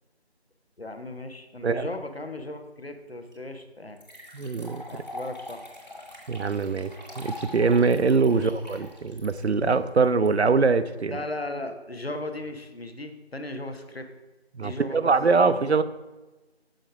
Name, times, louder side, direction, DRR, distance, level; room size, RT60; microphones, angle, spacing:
voice 1, 0.8-4.0 4.9-5.6 8.3-8.5 11.1-14.1 14.6-15.8, left 2 dB, 65° left, 7 dB, 0.9 m, -37 dB
sound 1, 3.3-3.4 4.0-10.3, left 1 dB, 40° left, 1.6 m, -43 dB
voice 2, 4.3-4.8 6.3-6.9 7.2-11.2 14.6-15.8, right 4 dB, 80° right, 13 dB, 0.5 m, -23 dB
6.4 x 5.4 x 4.7 m, 1.1 s
figure-of-eight pair, 180°, 32 cm